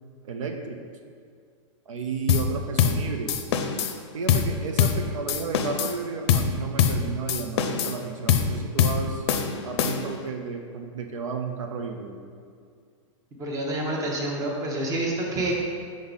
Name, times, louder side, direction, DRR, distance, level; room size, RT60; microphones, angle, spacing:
voice 1, 0.3-0.8 1.9-3.4 4.1-9.2 9.6-12.2, right 5 dB, 85° right, 4 dB, 0.7 m, -32 dB
sound 1, 2.3-2.5 2.8-3.0 3.3-3.9 4.3-4.5 4.8-5.0 5.3-6.0 6.3-6.5 6.8-7.0 7.3-8.0 8.3-8.5 8.8-9.0 9.3-10.2, left 8 dB, 55° left, 0.6 m, -23 dB
voice 2, 13.4-15.5, right 1 dB, 20° right, -1 dB, 1.0 m, -28 dB
5.5 x 5.0 x 3.9 m, 2.2 s
hypercardioid pair, 145°, 16 cm